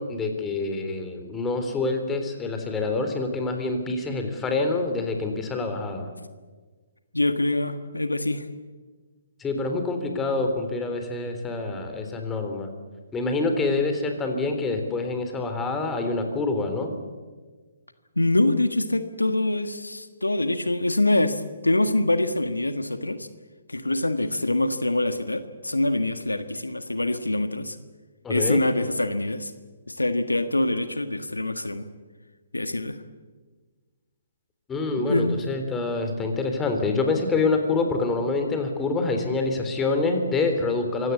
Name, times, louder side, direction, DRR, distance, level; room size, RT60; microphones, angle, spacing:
voice 1, 0.0-6.1 9.4-12.7 13.1-16.9 28.2-28.6 34.7-41.1, left 3 dB, 15° left, 5 dB, 3.6 m, -26 dB
voice 2, 7.1-8.5 18.1-23.3 23.7-27.8 28.3-29.5 29.9-31.8 32.5-33.0 35.1-35.4, left 2 dB, 90° left, 10 dB, 1.5 m, -24 dB
25.0 x 17.0 x 8.4 m, 1.4 s
figure-of-eight pair, 130°, 0 cm